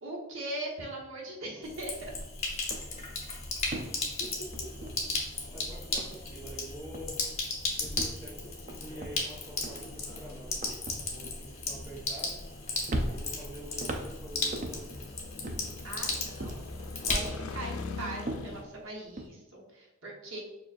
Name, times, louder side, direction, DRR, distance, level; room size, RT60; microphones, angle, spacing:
voice 1, 0.0-2.1 3.7-3.9 15.8-16.7 17.1-20.4, right 2 dB, 65° right, -3 dB, 1.1 m, -40 dB
Sink (filling or washing), 1.6-17.6, left 3 dB, 30° left, 0.8 m, -36 dB
sound 1, 2.0-2.2 2.5-5.5 5.8-6.7 6.9-7.3 7.8-12.5 12.9-15.0 15.4-16.9 17.2-19.3, right 1 dB, 35° right, 0.4 m, -40 dB
sound 2, 2.5-18.6, left 4 dB, 85° left, 0.4 m, -46 dB
voice 2, 4.2-7.2 7.7-12.4 13.0-15.2, right 1 dB, 15° right, -6 dB, 1.4 m, -47 dB
6.6 x 2.4 x 2.5 m, 1.0 s
head